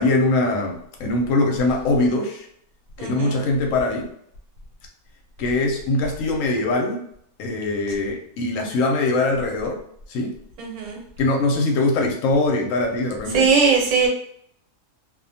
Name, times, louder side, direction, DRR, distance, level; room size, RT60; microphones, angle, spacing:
voice 1, 0.0-2.5 3.0-4.1 5.4-7.0 7.4-9.8 10.1-10.4 11.2-13.5, left 2 dB, 70° left, 1 dB, 0.9 m, -22 dB
voice 2, 3.0-3.4 10.6-11.0 13.3-14.1, right 5 dB, 85° right, -1 dB, 1.2 m, -19 dB
2.4 x 2.1 x 2.6 m, 0.69 s
omnidirectional pair, 1.5 m